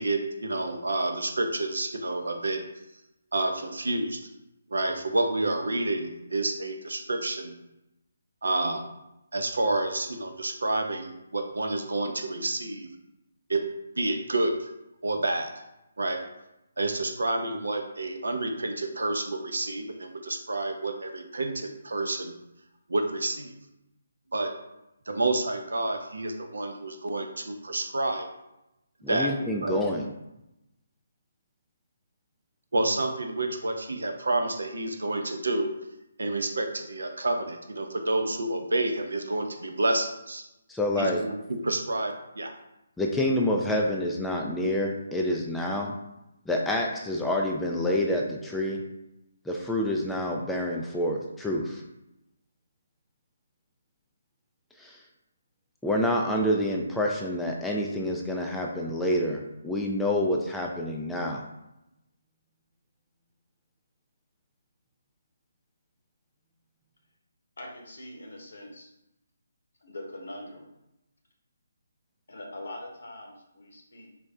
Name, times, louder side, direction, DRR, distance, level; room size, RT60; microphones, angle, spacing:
voice 1, 0.0-2.6 3.3-4.2 4.7-7.5 8.4-8.8 9.3-12.9 13.5-13.6 14.0-14.7 15.0-15.5 16.0-16.2 16.8-22.3 22.9-23.5 24.3-24.5 25.1-28.3 29.1-29.3 29.6-29.7 32.7-35.7 36.2-40.4 41.0-42.5, right 2 dB, 70° right, 5 dB, 0.5 m, -29 dB
voice 2, 29.0-30.1 40.7-41.2 43.0-45.9 46.5-48.8 49.5-51.8 54.8-55.0 55.8-61.4, left 1 dB, 5° left, -1 dB, 0.3 m, -27 dB
voice 3, 67.6-68.9 69.8-70.7 72.3-74.1, left 1 dB, 65° left, 1 dB, 0.9 m, -42 dB
4.2 x 2.1 x 3.5 m, 0.89 s
figure-of-eight pair, 145°, 0 cm